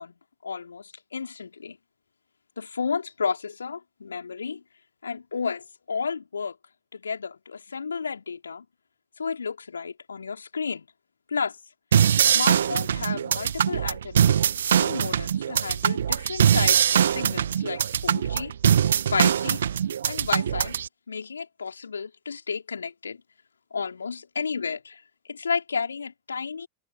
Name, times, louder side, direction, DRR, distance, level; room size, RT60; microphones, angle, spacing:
voice 1, 0.0-1.8 2.6-4.6 5.0-6.6 6.9-8.6 9.2-10.8 11.3-11.6 12.3-14.3 14.8-18.5 19.1-19.6 20.1-20.7 21.1-23.2 23.7-26.7, left 5 dB, 75° left, 4.9 m, -32 dB
sound 1, 11.9-20.9, right 9 dB, 65° right, 2.2 m, -22 dB
figure-of-eight pair, 90°, 0 cm